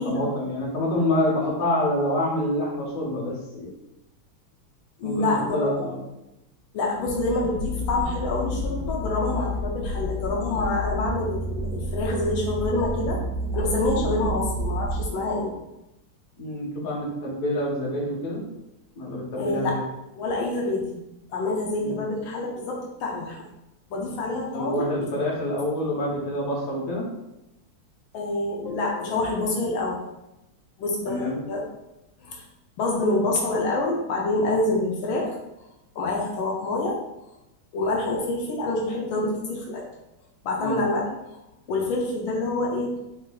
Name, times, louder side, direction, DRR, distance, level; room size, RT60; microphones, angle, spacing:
voice 1, 0.0-3.7 5.0-6.0 14.0-14.1 16.4-18.4 19.0-19.8 21.8-22.0 24.5-27.1 31.1-31.4 40.6-40.8, left 1 dB, 50° left, -3 dB, 1.3 m, -27 dB
voice 2, 5.0-5.7 6.7-13.2 13.5-15.5 19.4-19.8 20.2-21.0 21.3-23.4 23.9-24.9 28.1-30.0 30.8-31.6 32.2-32.4 32.8-35.4 35.9-37.0 37.7-39.8 40.4-41.1 41.7-43.0, left 2 dB, 80° left, -2 dB, 1.5 m, -26 dB
sound 1, 7.1-15.1, equal, 75° right, 1.5 m, -30 dB
4.4 x 2.7 x 3.8 m, 0.94 s
omnidirectional pair, 2.2 m